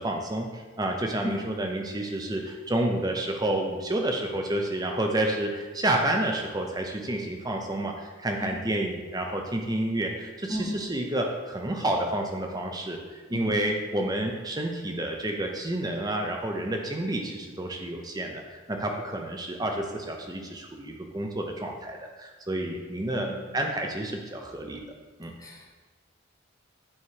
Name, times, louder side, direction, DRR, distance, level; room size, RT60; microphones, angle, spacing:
voice 1, 0.0-23.3 23.5-24.8 25.2-25.3, right 1 dB, 20° right, 2 dB, 0.7 m, -29 dB
voice 2, 25.4-25.7, left 1 dB, 15° left, -2 dB, 0.9 m, -33 dB
8.6 x 3.1 x 4.7 m, 1.3 s
head